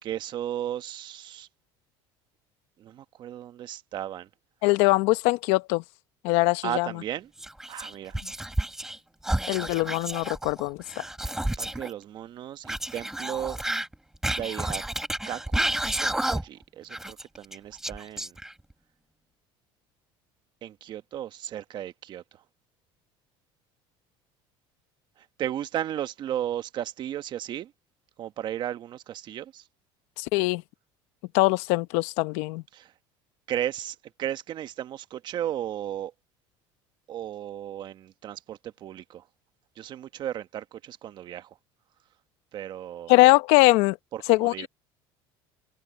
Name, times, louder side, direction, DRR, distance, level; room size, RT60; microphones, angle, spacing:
voice 1, 0.0-1.5 2.8-4.3 6.6-7.3 7.7-8.2 11.6-13.6 14.3-14.8 15.3-18.3 20.6-22.2 25.4-27.7 28.2-29.6 32.7-32.9 33.5-36.1 37.1-39.2 39.8-41.5 42.5-43.1 44.1-44.7, right 11 dB, 45° right, 1.3 m, -35 dB
voice 2, 4.6-5.8 6.2-6.9 9.5-10.8 30.2-30.6 31.3-32.6 43.1-44.0 44.3-44.7, left 22 dB, 80° left, 0.9 m, -22 dB
Whispering, 7.4-9.0 9.2-11.9 12.6-16.6 16.9-18.7, right 1 dB, 5° right, 1.4 m, -30 dB
cardioid pair, 125°, 10 cm